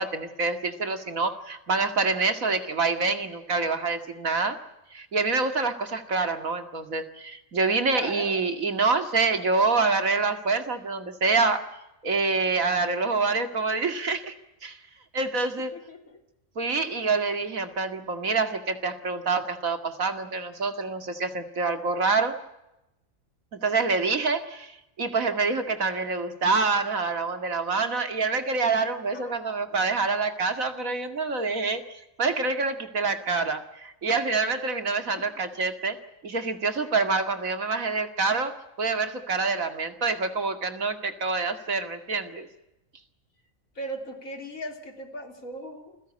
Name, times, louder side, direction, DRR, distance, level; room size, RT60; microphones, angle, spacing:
voice 1, 0.0-4.6 4.9-11.6 12.0-14.3 14.6-14.8 15.1-15.7 16.6-22.4 23.6-31.8 32.2-36.0 36.2-42.5, right 4 dB, 90° right, 8 dB, 2.6 m, -26 dB
voice 2, 7.9-8.4 15.7-16.2 29.1-29.7 35.2-35.3 43.7-46.0, equal, 85° left, 5 dB, 3.6 m, -38 dB
28.5 x 16.5 x 9.7 m, 0.92 s
omnidirectional pair, 1.4 m